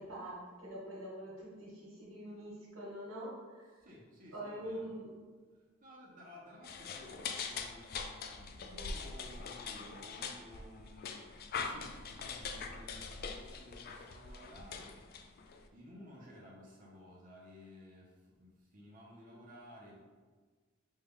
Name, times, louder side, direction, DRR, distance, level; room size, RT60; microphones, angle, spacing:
voice 1, 0.0-3.8 4.3-5.1, right 1 dB, 75° right, -7 dB, 1.3 m, -45 dB
voice 2, 3.7-4.9 5.5-15.2 15.7-20.0, left 1 dB, 40° right, -4 dB, 0.7 m, -55 dB
sound 1, 6.6-15.7, left 5 dB, 45° left, 0.3 m, -43 dB
5.3 x 2.3 x 3.5 m, 1.4 s
head